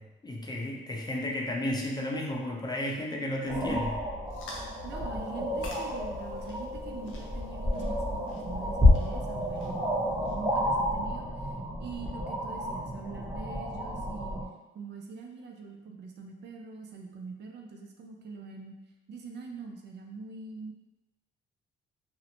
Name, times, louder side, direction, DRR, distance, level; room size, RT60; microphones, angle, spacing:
voice 1, 0.0-4.0, left 1 dB, 20° left, -1 dB, 0.5 m, -33 dB
sound 1, 3.5-14.4, left 1 dB, 20° right, 0.9 m, -30 dB
sound 2, 4.3-10.6, left 2 dB, 90° left, 0.5 m, -50 dB
voice 2, 4.8-14.4 14.7-18.8 19.1-20.7, right 4 dB, 60° right, 2 dB, 0.4 m, -43 dB
2.5 x 2.1 x 2.8 m, 1.0 s
cardioid pair, 90°, 20 cm